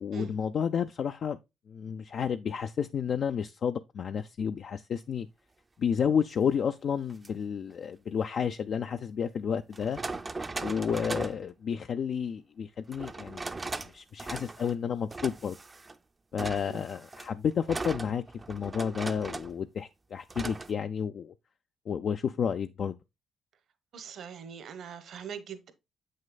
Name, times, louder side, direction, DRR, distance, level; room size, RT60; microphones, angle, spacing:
voice 1, 0.0-1.4 1.7-5.3 5.8-10.0 10.6-13.4 13.8-15.6 16.3-18.2 18.5-21.3 21.9-23.0, left 7 dB, 60° left, 0.4 m, -31 dB
sound 1, 7.1-7.3 8.9-9.0 9.7-11.4 12.9-13.9 14.2-14.8 15.1-16.0 16.4-19.6 20.3-20.7, right 3 dB, 25° right, 0.5 m, -38 dB
voice 2, 23.9-25.7, right 7 dB, 65° right, 1.0 m, -42 dB
7.5 x 6.4 x 2.3 m
cardioid pair, 90°, 0 cm